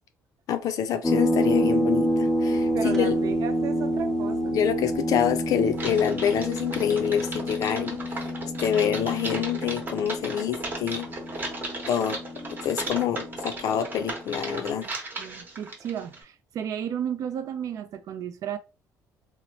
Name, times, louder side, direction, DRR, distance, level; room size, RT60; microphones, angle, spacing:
voice 1, 0.5-3.1 4.5-8.0 8.6-11.1 11.4-11.5 11.9-12.2 12.6-14.9, left 9 dB, 65° left, 0.4 m, -26 dB
sound 1, 1.0-14.1, equal, 5° left, 0.4 m, -28 dB
voice 2, 2.5-4.6 15.2-18.6, right 8 dB, 60° right, 0.4 m, -33 dB
Typing, 5.7-16.2, right 2 dB, 30° right, 1.0 m, -36 dB
2.9 x 2.0 x 2.7 m
cardioid pair, 105°, 7 cm